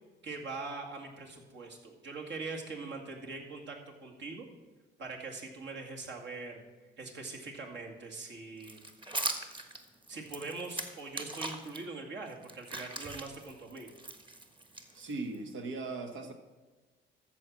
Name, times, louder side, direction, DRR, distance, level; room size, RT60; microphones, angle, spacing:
voice 1, 0.2-4.5 5.0-6.6 7.0-8.8 10.1-14.0, right 3 dB, 65° right, 1 dB, 2.3 m, -42 dB
sound 1, 8.6-11.8 12.3-15.4, right 2 dB, 25° right, 1.3 m, -40 dB
voice 2, 14.9-16.3, right 3 dB, 80° right, 5 dB, 1.5 m, -38 dB
13.5 x 4.6 x 7.4 m, 1.2 s
cardioid pair, 90°, 20 cm